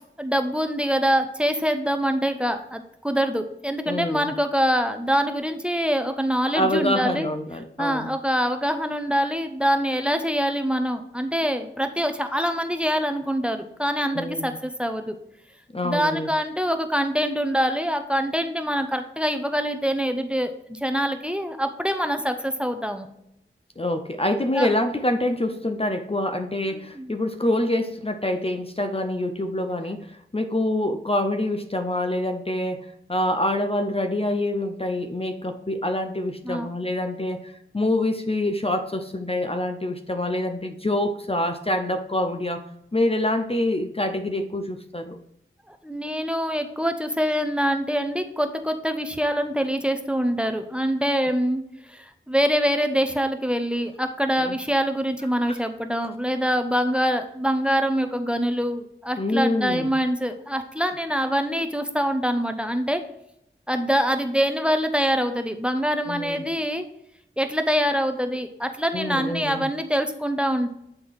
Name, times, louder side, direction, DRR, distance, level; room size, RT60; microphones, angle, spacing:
voice 1, 0.2-7.3 7.8-15.2 15.8-23.1 24.5-24.7 26.7-27.1 36.4-36.7 45.7-51.6 51.9-63.0 63.7-66.8 67.4-70.7, equal, 5° right, 8 dB, 0.7 m, -25 dB
voice 2, 3.9-4.3 6.5-8.1 14.1-14.5 15.7-16.3 23.8-42.7 42.9-45.2 54.4-54.5 55.5-55.6 59.2-59.9 66.1-66.4 68.9-69.7, left 1 dB, 30° left, 6 dB, 0.6 m, -26 dB
8.6 x 3.9 x 4.7 m, 0.78 s
wide cardioid pair, 40°, 20 cm